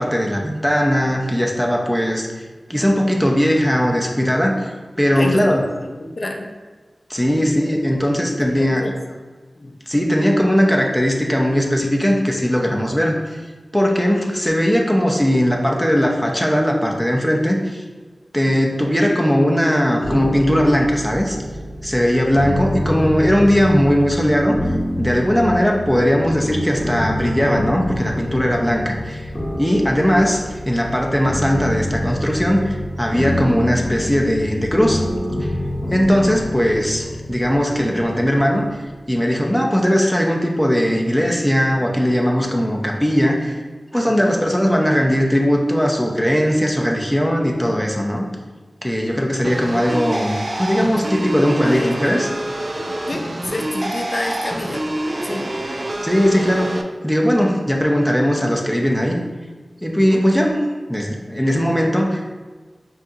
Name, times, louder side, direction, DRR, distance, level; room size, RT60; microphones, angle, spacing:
voice 1, 0.0-2.3 2.7-4.7 5.0-5.6 7.1-8.9 9.9-13.4 13.7-17.8 18.3-21.4 21.8-24.6 25.0-29.3 29.6-35.0 35.9-38.6 39.1-43.6 43.9-48.3 48.8-52.3 56.0-59.2 59.8-60.5 60.9-62.3, equal, ahead, 0 dB, 0.7 m, -18 dB
voice 2, 5.1-6.5 7.4-7.6 8.1-9.0 9.6-9.7 18.5-18.6 22.2-22.3 44.0-44.3 51.4-52.4 52.8-54.8 55.2-55.4 60.0-60.2, left 1 dB, 50° left, 3 dB, 0.6 m, -29 dB
sound 1, 20.0-39.0, left 1 dB, 25° left, 1.0 m, -26 dB
sound 2, 49.4-56.8, right 1 dB, 45° right, 0.4 m, -26 dB
5.5 x 2.5 x 2.8 m, 1.3 s
wide cardioid pair, 60°, 0 cm